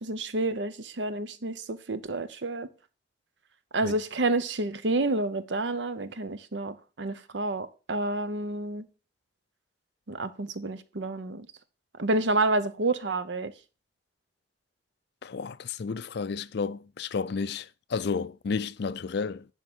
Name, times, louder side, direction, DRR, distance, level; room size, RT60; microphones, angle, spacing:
voice 1, 0.0-2.7 3.7-8.9 10.1-11.5 12.0-13.5, right 2 dB, 80° right, 0.8 m, -29 dB
voice 2, 15.2-19.5, left 5 dB, 65° left, 0.5 m, -32 dB
11.0 x 3.7 x 6.3 m
head